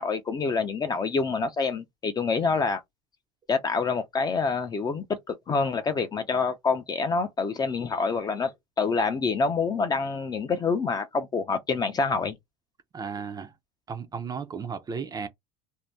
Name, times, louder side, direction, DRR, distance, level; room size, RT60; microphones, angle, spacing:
voice 1, 0.0-2.8 3.5-12.4, left 4 dB, 25° left, 0.5 m, -27 dB
voice 2, 12.9-13.5 13.9-15.3, right 6 dB, 20° right, 0.5 m, -34 dB
2.6 x 2.1 x 3.3 m
supercardioid pair, 115°, 17 cm